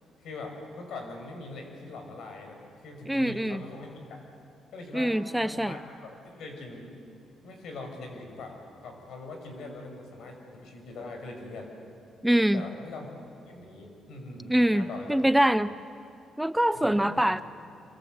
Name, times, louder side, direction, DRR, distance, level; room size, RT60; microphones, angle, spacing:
voice 1, 0.2-4.3 4.7-5.1 5.4-7.1 7.4-11.7 12.5-13.1 13.4-15.3 16.7-17.2, left 3 dB, 75° left, 3 dB, 6.6 m, -42 dB
voice 2, 3.1-3.6 4.9-5.8 12.2-12.6 14.5-15.7 16.4-17.4, right 1 dB, 5° right, 14 dB, 0.6 m, -24 dB
27.0 x 25.5 x 8.0 m, 2.5 s
cardioid pair, 90°, 0 cm